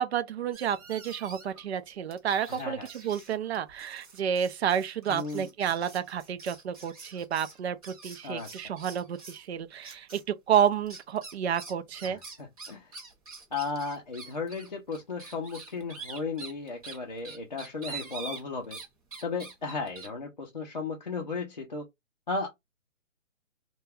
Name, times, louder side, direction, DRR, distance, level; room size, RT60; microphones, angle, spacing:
voice 1, 0.0-10.2 10.5-12.2, right 8 dB, 55° right, 0.4 m, -30 dB
sound 1, 0.5-1.6 2.1-9.5 9.8-10.2 10.5-18.9 19.1-20.1, right 4 dB, 30° right, 0.8 m, -45 dB
voice 2, 2.5-2.9 5.1-5.5 8.2-8.5 12.1-12.9 13.5-18.8 19.2-21.9 22.3-22.5, left 4 dB, 35° left, 0.4 m, -35 dB
2.3 x 2.2 x 3.2 m
hypercardioid pair, 155°, 39 cm